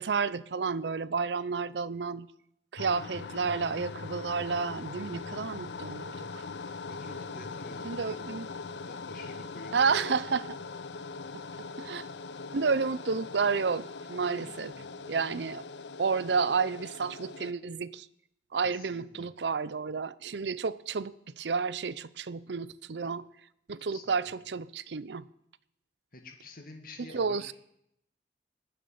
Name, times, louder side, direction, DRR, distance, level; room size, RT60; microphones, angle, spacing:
voice 1, 0.0-2.3 2.7-6.4 7.8-8.5 9.7-10.5 11.8-12.1 12.5-14.7 15.1-15.6 16.0-18.1 18.5-23.3 23.7-25.2 27.1-27.5, right 5 dB, 75° right, 0.6 m, -31 dB
sound 1, 2.8-17.5, left 4 dB, 80° left, 0.7 m, -41 dB
voice 2, 6.9-10.0 14.4-15.0 15.3-15.4 18.7-19.3 23.0-23.1 23.9-24.4 26.1-27.5, left 2 dB, 55° left, 2.0 m, -49 dB
19.5 x 6.8 x 9.3 m
head